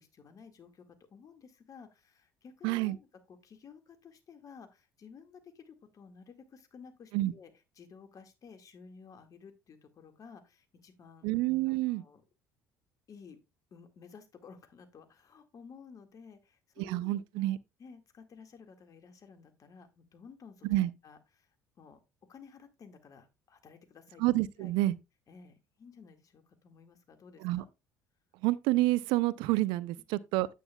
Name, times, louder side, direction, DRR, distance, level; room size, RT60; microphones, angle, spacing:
voice 1, 0.0-11.2 11.7-12.2 13.1-13.4 13.7-21.5 21.8-22.0 22.3-24.2 24.6-24.7 25.3-27.7, left 5 dB, 45° left, 1.8 m, -54 dB
voice 2, 2.6-3.0 7.1-7.3 11.2-12.0 16.8-17.6 20.6-20.9 24.2-24.9 27.4-27.6 28.4-30.5, right 17 dB, 65° right, 0.5 m, -28 dB
9.1 x 8.8 x 2.2 m
hypercardioid pair, 65°, 8 cm